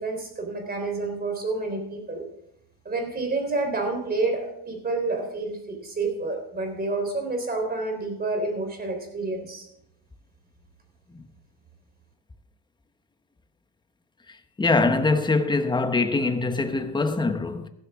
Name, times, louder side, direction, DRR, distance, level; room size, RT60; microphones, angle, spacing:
voice 1, 0.0-2.2 2.9-9.7, right 3 dB, 25° right, 3.7 m, -29 dB
voice 2, 14.3-17.7, left 3 dB, 10° left, 0.9 m, -23 dB
15.5 x 12.5 x 3.6 m
cardioid pair, 130°, 41 cm